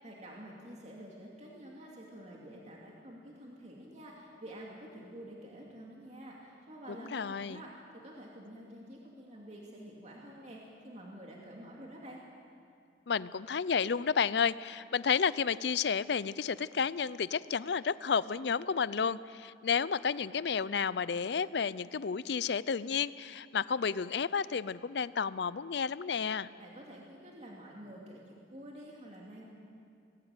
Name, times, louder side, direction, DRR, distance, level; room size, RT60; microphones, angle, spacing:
voice 1, 0.0-12.2 26.6-29.4, right 1 dB, 35° right, -2 dB, 2.5 m, -49 dB
voice 2, 7.1-7.6 13.1-26.5, left 6 dB, 65° left, 18 dB, 0.5 m, -31 dB
20.0 x 16.5 x 9.1 m, 2.4 s
head